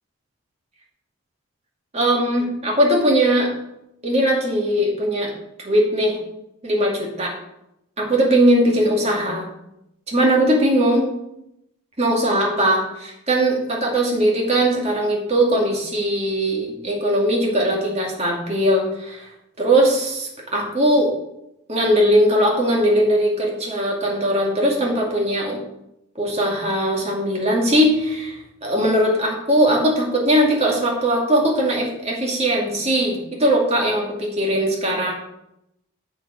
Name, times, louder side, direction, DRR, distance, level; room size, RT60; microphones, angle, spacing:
voice 1, 1.9-3.5 4.0-5.3 5.6-6.2 6.6-7.3 8.0-9.5 10.1-11.1 12.0-19.3 19.6-21.1 21.7-25.6 26.2-35.1, right 1 dB, 30° right, -2 dB, 2.2 m, -20 dB
7.3 x 7.1 x 5.1 m, 0.83 s
head